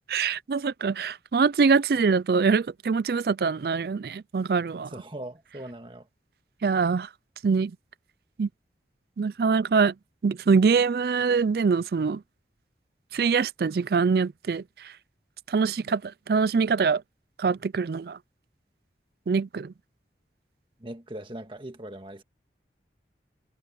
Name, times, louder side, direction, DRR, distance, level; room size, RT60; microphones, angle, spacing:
voice 1, 0.1-4.9 6.6-7.1 7.4-7.7 8.4-8.5 9.2-9.9 10.2-12.2 13.1-14.9 15.5-17.0 17.4-18.2 19.3-19.7, right 5 dB, 55° right, 0.4 m, -24 dB
voice 2, 4.9-6.1 20.8-22.2, right 1 dB, 30° right, 1.7 m, -40 dB
head